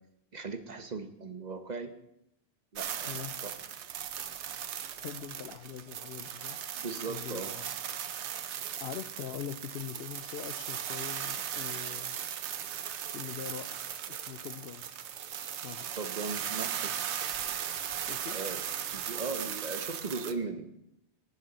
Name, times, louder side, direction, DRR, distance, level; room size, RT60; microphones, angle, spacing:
voice 1, 0.3-1.9 2.7-3.6 6.7-7.6 15.9-16.9 17.2-17.4 18.3-18.6 18.9-20.7, right 3 dB, 40° right, 8 dB, 1.0 m, -38 dB
sound 1, 2.8-20.3, right 9 dB, 90° right, 1.0 m, -37 dB
voice 2, 5.0-6.6 7.1-7.7 8.8-12.2 13.1-14.9 15.6-15.9 18.1-18.4, left 10 dB, 70° left, 14 dB, 0.8 m, -42 dB
18.5 x 6.8 x 4.0 m, 0.80 s
omnidirectional pair, 1.1 m